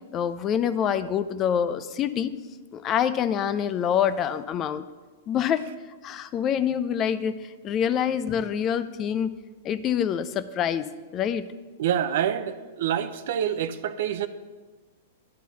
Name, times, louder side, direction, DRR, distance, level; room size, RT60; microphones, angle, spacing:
voice 1, 0.1-2.4 2.7-4.8 5.3-5.7 6.0-9.3 9.6-10.9 11.1-11.5, left 8 dB, 30° left, 13 dB, 0.4 m, -26 dB
voice 2, 11.8-14.3, right 10 dB, 60° right, 12 dB, 0.5 m, -27 dB
10.5 x 4.6 x 7.0 m, 1.3 s
hypercardioid pair, 110°, 0 cm